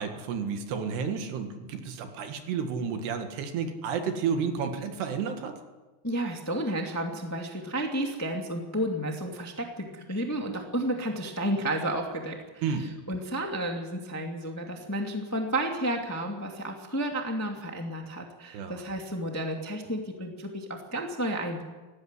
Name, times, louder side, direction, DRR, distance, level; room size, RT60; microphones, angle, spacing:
voice 1, 0.0-5.5 12.6-12.9 18.5-18.8, right 6 dB, 75° right, 6 dB, 3.8 m, -31 dB
voice 2, 6.0-21.6, right 1 dB, 5° left, 2 dB, 1.2 m, -32 dB
18.5 x 16.0 x 9.8 m, 1.2 s
omnidirectional pair, 4.8 m